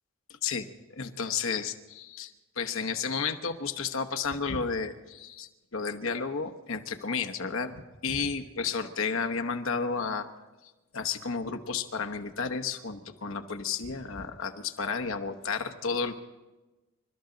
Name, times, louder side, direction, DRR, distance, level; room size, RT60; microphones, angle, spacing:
voice 1, 0.4-10.3 10.9-16.1, left 5 dB, 70° left, 6 dB, 1.1 m, -32 dB
27.0 x 13.0 x 4.0 m, 1.1 s
head